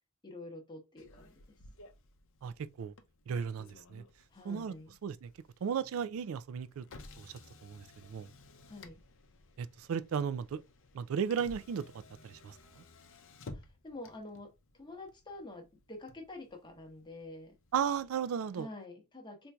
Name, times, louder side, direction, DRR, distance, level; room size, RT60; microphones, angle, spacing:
voice 1, 0.2-1.6 4.3-5.0 8.7-9.0 13.4-17.6 18.5-19.5, left 2 dB, 20° left, 0.8 m, -48 dB
Motor vehicle (road), 1.0-18.1, left 2 dB, 60° left, 0.6 m, -56 dB
voice 2, 2.4-2.9 3.3-4.0 4.5-4.7 5.0-5.3 5.6-6.8 7.2-8.3 9.6-10.6 10.9-11.8 12.2-12.6 17.7-18.7, right 7 dB, 65° right, 0.3 m, -35 dB
4.3 x 2.6 x 2.2 m
head